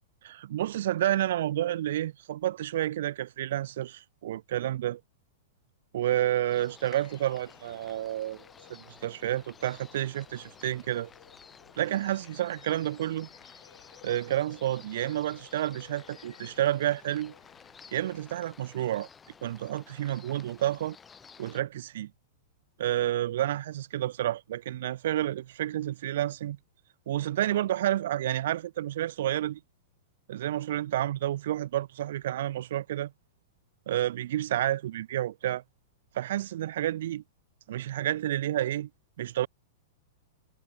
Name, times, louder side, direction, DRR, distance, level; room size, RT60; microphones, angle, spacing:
voice 1, 0.2-5.0 5.9-8.4 8.7-11.1 11.8-13.3 14.0-17.3 17.9-19.1 19.4-21.0 21.4-22.1 22.8-26.6 27.1-29.6 30.3-33.1 33.9-35.6 36.1-37.2 37.7-38.9 39.2-39.5, right 13 dB, 55° right, 2.0 m, -30 dB
sound 1, 6.5-21.6, left 6 dB, 15° left, 3.9 m, -53 dB
sound 2, 7.0-18.3, left 8 dB, 65° left, 6.2 m, -58 dB
figure-of-eight pair, 100°, 0 cm